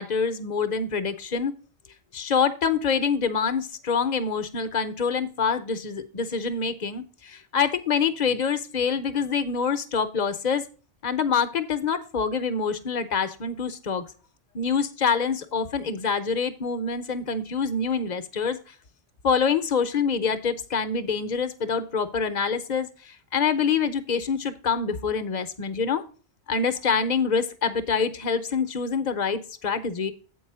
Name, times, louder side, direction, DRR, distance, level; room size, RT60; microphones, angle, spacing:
voice 1, 0.0-1.5 2.1-10.6 11.0-14.0 14.5-18.6 19.2-22.9 23.3-26.0 26.5-30.1, left 5 dB, 45° left, 10 dB, 0.8 m, -26 dB
8.1 x 4.7 x 5.5 m, 0.38 s
omnidirectional pair, 1.2 m